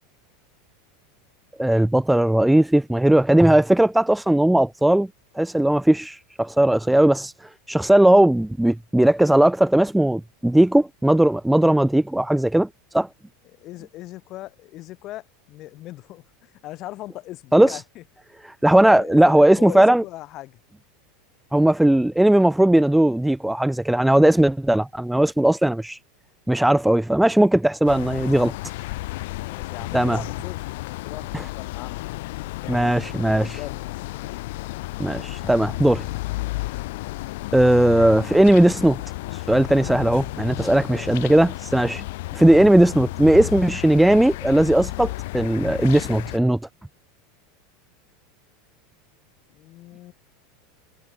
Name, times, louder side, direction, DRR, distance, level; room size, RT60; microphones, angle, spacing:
voice 1, 1.6-5.1 5.3-12.7 12.9-13.1 17.5-17.8 18.6-20.0 21.5-26.0 26.5-28.5 29.9-30.2 31.3-31.4 32.7-33.6 35.0-36.1 37.5-39.0 39.3-42.0 42.3-46.6, right 1 dB, 5° right, 1.1 m, -18 dB
voice 2, 13.4-18.0 18.9-20.6 29.4-30.6 31.0-32.0 32.6-32.8 33.3-33.8 40.9-41.2 49.5-50.1, left 16 dB, 50° left, 4.2 m, -39 dB
sound 1, 27.9-46.4, left 20 dB, 65° left, 4.0 m, -32 dB
hypercardioid pair, 90°, 0 cm